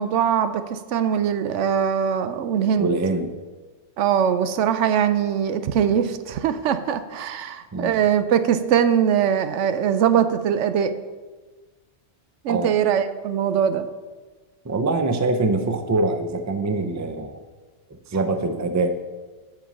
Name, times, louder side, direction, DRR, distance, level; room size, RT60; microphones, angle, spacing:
voice 1, 0.0-3.0 4.0-10.9 12.4-13.9, right 8 dB, 85° right, 11 dB, 0.9 m, -21 dB
voice 2, 2.8-3.3 7.7-8.0 12.5-12.8 14.6-17.4 18.1-19.0, right 2 dB, 25° right, 7 dB, 0.4 m, -24 dB
7.5 x 5.5 x 7.0 m, 1.3 s
omnidirectional pair, 1.2 m